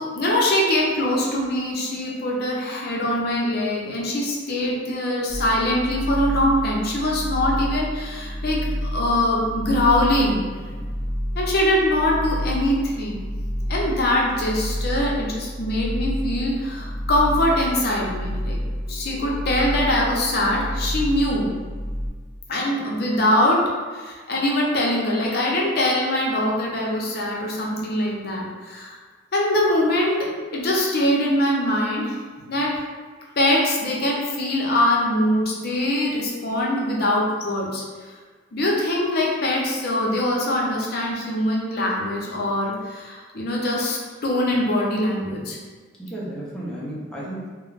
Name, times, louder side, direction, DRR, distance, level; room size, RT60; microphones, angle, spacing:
voice 1, 0.0-10.4 11.4-13.2 13.7-18.6 18.9-21.5 22.5-23.6 23.9-29.0 29.3-32.2 32.5-32.8 33.4-37.8 38.5-45.6, left 1 dB, 55° left, -2 dB, 0.5 m, -23 dB
sound 1, 5.3-22.1, equal, 55° right, 0.8 m, -29 dB
voice 2, 46.0-47.5, right 1 dB, 5° left, -7 dB, 0.4 m, -34 dB
2.3 x 2.1 x 3.1 m, 1.5 s
head